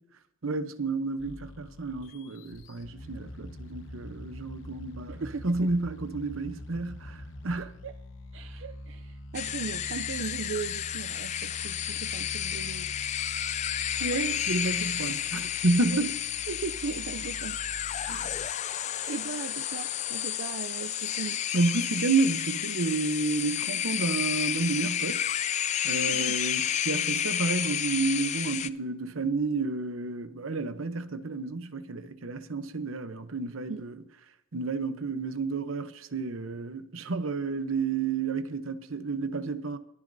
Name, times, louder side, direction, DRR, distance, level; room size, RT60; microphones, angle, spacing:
voice 1, 0.4-7.7 14.0-16.1 18.0-18.3 21.5-25.3 25.8-34.0 34.5-39.8, right 3 dB, 85° right, 0.9 m, -30 dB
sound 1, 1.2-19.7, left 1 dB, 65° left, 1.0 m, -45 dB
voice 2, 5.1-5.7 7.6-7.9 8.3-12.9 15.9-16.1 16.5-17.6 18.2-21.4 26.1-26.3 33.7-33.8, right 5 dB, 70° right, 0.5 m, -38 dB
sound 2, 9.3-28.7, left 10 dB, 35° left, 0.3 m, -31 dB
22.5 x 10.5 x 2.7 m
head